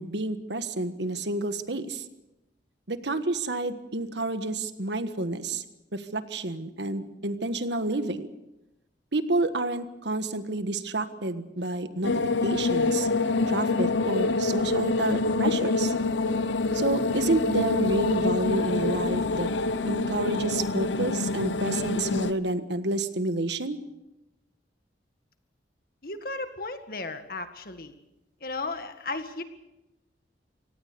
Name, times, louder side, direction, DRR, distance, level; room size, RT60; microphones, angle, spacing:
voice 1, 0.0-2.0 2.9-5.6 5.9-8.3 9.1-12.1 12.4-13.1 13.5-15.9 16.7-19.5 19.9-23.8, right 2 dB, 75° right, 10 dB, 1.5 m, -29 dB
sound 1, 12.0-22.3, left 3 dB, 85° left, 0.9 m, -26 dB
voice 2, 26.0-28.0 28.4-29.4, left 3 dB, 50° left, 8 dB, 1.9 m, -35 dB
25.0 x 18.0 x 6.9 m, 0.94 s
head